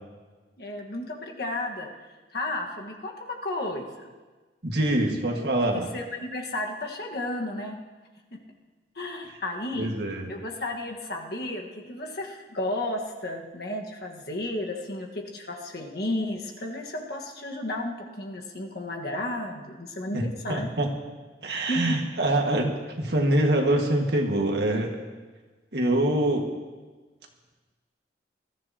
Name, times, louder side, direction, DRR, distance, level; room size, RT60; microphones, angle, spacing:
voice 1, 0.6-1.9 2.3-4.1 5.7-7.8 8.3-8.4 8.9-9.9 10.3-20.7 21.7-22.0, left 1 dB, 60° left, 1 dB, 1.5 m, -33 dB
voice 2, 4.6-5.9 9.7-10.3 20.1-20.9 21.4-25.0 25.7-26.5, right 1 dB, 65° right, 1 dB, 1.8 m, -25 dB
21.0 x 13.5 x 2.9 m, 1.3 s
head